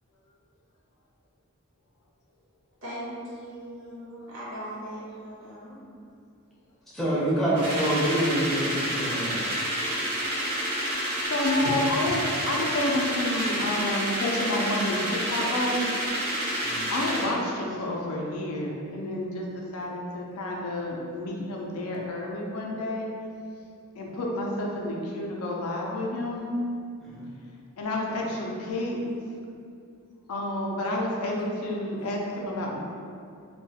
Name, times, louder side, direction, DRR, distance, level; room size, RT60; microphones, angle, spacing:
voice 1, 2.8-5.8, equal, 55° right, -9 dB, 0.7 m, -39 dB
voice 2, 6.9-9.4 16.6-16.9 27.0-27.3, right 1 dB, ahead, -9 dB, 0.4 m, -26 dB
sound 1, 7.6-17.3, equal, 90° right, 1.0 m, -29 dB
voice 3, 10.9-15.9 16.4-16.6 16.9-23.1 24.0-26.5 27.8-29.0 30.3-32.8, left 1 dB, 80° left, -2 dB, 0.4 m, -30 dB
2.3 x 2.2 x 2.7 m, 2.4 s
head